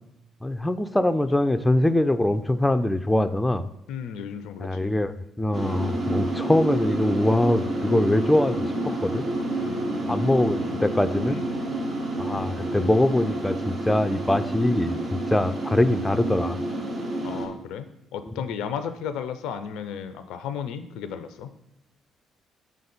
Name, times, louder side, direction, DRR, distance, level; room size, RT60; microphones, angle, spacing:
voice 1, 0.4-3.7 4.6-9.2 10.1-11.4 12.2-16.6 18.3-18.4, left 1 dB, 10° left, 10 dB, 0.4 m, -23 dB
voice 2, 3.9-4.9 9.6-10.3 11.3-11.5 17.2-21.5, left 7 dB, 70° left, 11 dB, 0.4 m, -34 dB
sound 1, 5.5-17.5, right 1 dB, 55° right, 1.3 m, -29 dB
5.3 x 3.9 x 5.2 m, 0.85 s
hypercardioid pair, 45°, 0 cm